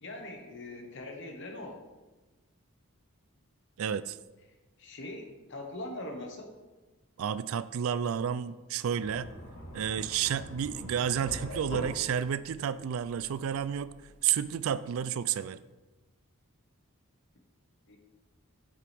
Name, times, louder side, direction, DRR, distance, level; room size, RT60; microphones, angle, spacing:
voice 1, 0.0-1.8 4.8-6.5 17.9-18.0, left 1 dB, 60° left, 3 dB, 1.2 m, -41 dB
voice 2, 3.8-4.2 7.2-9.3 9.7-13.9 14.2-15.6, right 8 dB, 70° right, 16 dB, 0.3 m, -31 dB
sound 1, 8.9-14.6, equal, 85° left, 2.7 m, -44 dB
7.5 x 6.9 x 3.4 m, 1.1 s
head